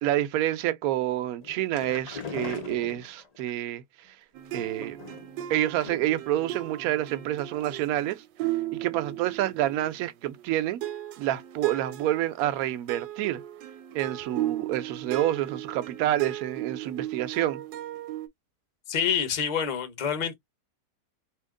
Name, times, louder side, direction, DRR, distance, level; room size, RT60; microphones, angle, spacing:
voice 1, 0.0-3.8 4.5-5.0 5.5-8.2 8.7-10.8 11.2-13.4 13.9-17.6, right 13 dB, 70° right, 0.9 m, -28 dB
sound 1, 1.4-3.5 4.5-5.4 5.8-6.3 6.5-6.6 7.0-7.1, left 5 dB, 75° left, 0.3 m, -40 dB
sound 2, 4.3-10.5 10.8-18.3, right 14 dB, 85° right, 1.3 m, -36 dB
voice 2, 18.9-20.3, left 7 dB, 35° left, 0.7 m, -27 dB
2.9 x 2.8 x 3.6 m
omnidirectional pair, 1.9 m